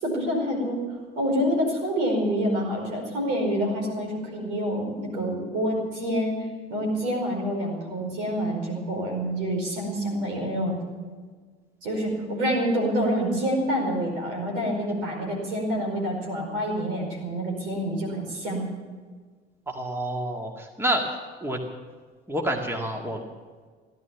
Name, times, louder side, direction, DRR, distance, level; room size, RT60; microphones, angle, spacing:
voice 1, 0.0-0.8 1.1-6.4 6.7-10.7 11.8-18.7, equal, 65° right, 0 dB, 5.1 m, -27 dB
voice 2, 19.7-21.0 21.4-21.6 22.3-23.2, right 1 dB, 10° right, 2 dB, 2.1 m, -28 dB
16.5 x 12.0 x 7.2 m, 1.5 s
figure-of-eight pair, 60°, 29 cm